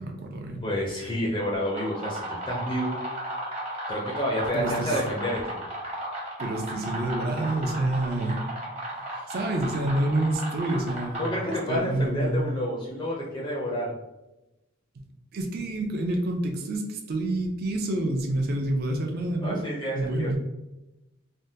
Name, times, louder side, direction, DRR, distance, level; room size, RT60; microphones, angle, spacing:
voice 1, 0.0-0.6 4.5-5.0 6.4-8.5 9.3-12.5 15.3-19.6 19.9-20.4, right 1 dB, 45° right, 3 dB, 0.4 m, -28 dB
voice 2, 0.6-3.0 3.9-5.6 11.2-13.9 19.4-20.4, equal, 20° left, -3 dB, 0.4 m, -29 dB
sound 1, 1.5-11.9, right 1 dB, 30° right, 0.9 m, -35 dB
3.4 x 2.2 x 2.7 m, 0.97 s
head